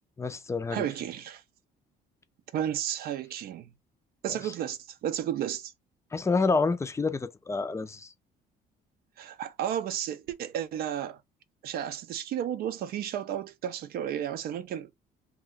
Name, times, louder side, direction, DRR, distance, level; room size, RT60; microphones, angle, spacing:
voice 1, 0.2-0.8 6.1-8.1, left 4 dB, 15° left, 0.4 m, -28 dB
voice 2, 0.7-1.4 2.5-3.7 4.2-5.7 9.2-11.2 11.6-14.9, right 10 dB, 65° right, 0.5 m, -33 dB
2.7 x 2.2 x 3.6 m
cardioid pair, 110°, 17 cm